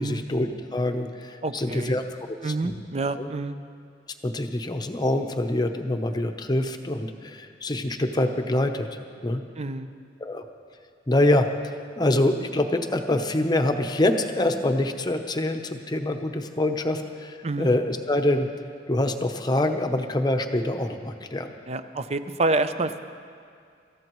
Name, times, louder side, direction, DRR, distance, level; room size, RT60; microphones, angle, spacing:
voice 1, 0.0-2.8 3.2-3.3 4.2-9.4 10.2-10.4 11.1-11.5 12.0-18.5 18.9-21.5, left 1 dB, 25° left, 6 dB, 0.8 m, -25 dB
voice 2, 1.4-2.0 2.4-3.6 9.6-9.9 17.4-17.7 21.7-23.0, right 2 dB, 35° right, 10 dB, 0.6 m, -27 dB
26.0 x 14.0 x 3.1 m, 2.3 s
head